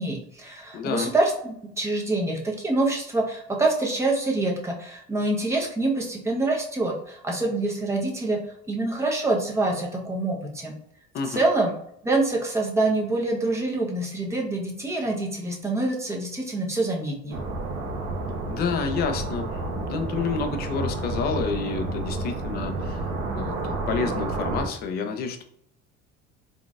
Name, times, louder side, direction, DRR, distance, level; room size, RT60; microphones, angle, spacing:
voice 1, 0.0-8.4 8.7-10.7 11.3-11.7 12.0-17.4, right 2 dB, 15° right, -1 dB, 0.9 m, -26 dB
voice 2, 0.7-1.1 11.1-11.4 18.5-25.4, left 5 dB, 50° left, 7 dB, 0.6 m, -29 dB
sound 1, 17.3-24.7, right 2 dB, 70° right, 1.1 m, -30 dB
3.9 x 3.7 x 2.4 m, 0.70 s
cardioid pair, 140°, 21 cm